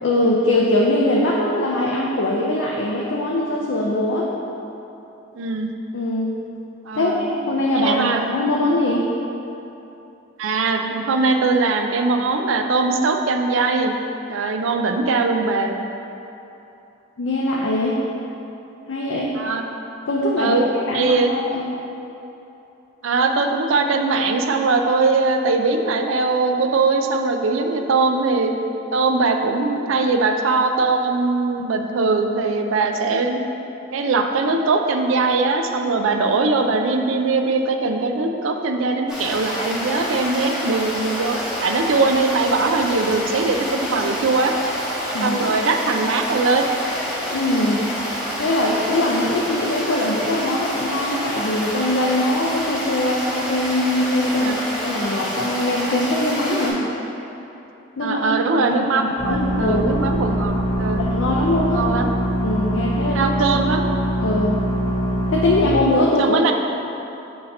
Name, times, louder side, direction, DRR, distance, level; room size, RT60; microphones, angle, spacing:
voice 1, 0.0-4.3 5.9-6.3 6.9-9.0 17.2-18.0 18.9-19.3 20.1-20.6 20.9-21.6 45.1-45.4 47.3-47.9 48.4-56.8 58.0-58.3 58.7-59.9 61.0-61.9 62.4-63.6 64.2-64.6 65.3-66.5, left 1 dB, 70° left, -3 dB, 0.5 m, -22 dB
voice 2, 5.3-5.7 6.8-7.3 7.7-8.2 10.4-13.9 14.3-15.8 19.4-19.6 20.4-20.7 20.9-21.3 23.0-28.5 28.9-33.4 33.9-44.5 45.2-46.6 54.4-54.6 56.7-56.8 58.0-61.1 61.7-62.1 63.1-63.9 66.2-66.5, right 3 dB, 85° right, 5 dB, 0.4 m, -21 dB
Stream, 39.1-56.7, equal, 5° right, 0.8 m, -28 dB
sound 1, 59.2-65.6, equal, 30° left, 0.8 m, -23 dB
6.6 x 2.8 x 5.2 m, 2.9 s
head